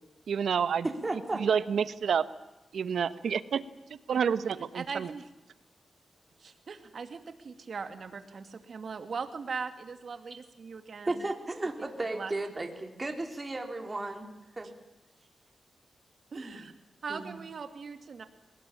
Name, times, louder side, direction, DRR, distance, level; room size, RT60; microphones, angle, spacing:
voice 1, 0.3-0.8 1.4-2.2 2.7-3.6 4.1-4.8, right 7 dB, 85° right, 13 dB, 1.1 m, -28 dB
voice 2, 0.8-1.4 11.1-14.7 16.3-16.6 17.1-17.3, right 2 dB, 30° right, 4 dB, 4.0 m, -34 dB
voice 3, 4.5-5.3 6.4-11.2 12.1-12.3 16.3-16.7 17.0-18.3, right 5 dB, 65° right, 7 dB, 2.6 m, -40 dB
23.5 x 20.0 x 8.8 m, 0.99 s
cardioid pair, 75°, 0 cm